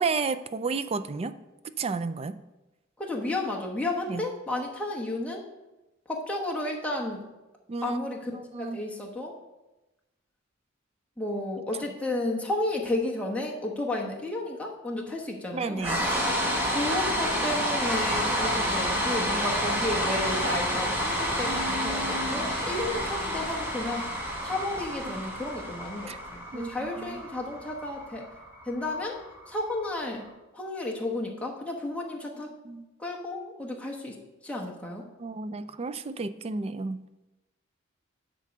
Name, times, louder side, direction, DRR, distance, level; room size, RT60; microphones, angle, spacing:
voice 1, 0.0-1.3 1.8-2.3 4.1-4.2 7.7-8.0 8.5-8.8 15.5-16.0 21.5-22.6 25.0-25.1 26.1-26.2 26.5-27.2 32.7-32.8 35.2-37.0, right 4 dB, 30° right, 13 dB, 0.3 m, -32 dB
voice 2, 3.0-5.4 6.1-7.2 7.8-9.3 11.2-15.9 16.2-24.1 24.4-28.3 28.6-29.2 29.5-30.2 30.5-32.5 33.0-34.1 34.4-35.0, left 2 dB, 5° left, -2 dB, 1.2 m, -32 dB
sound 1, 15.8-29.9, equal, 10° right, 1.4 m, -29 dB
10.0 x 3.9 x 6.6 m, 1.0 s
head